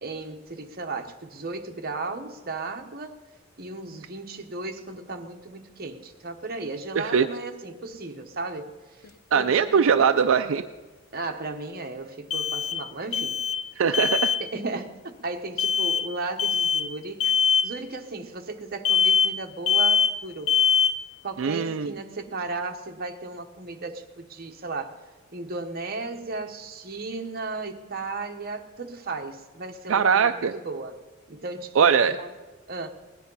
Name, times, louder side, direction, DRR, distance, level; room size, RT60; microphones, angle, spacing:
voice 1, 0.0-3.2 3.6-8.7 9.0-10.0 11.1-13.4 14.4-17.3 17.6-20.5 21.2-25.0 25.3-31.0 31.3-32.3 32.7-32.9, right 3 dB, 45° right, 4 dB, 1.1 m, -35 dB
voice 2, 7.0-7.3 9.3-10.6 13.8-14.3 21.4-21.9 29.9-30.5 31.8-32.2, right 6 dB, 70° right, 8 dB, 0.4 m, -21 dB
sound 1, 9.0-9.1 12.3-12.9 13.1-13.7 13.9-14.4 15.6-16.1 16.4-16.9 17.2-17.7 18.8-19.4 19.7-20.2 20.5-21.0, left 7 dB, 70° left, 0.6 m, -22 dB
18.5 x 10.5 x 5.5 m, 1.3 s
head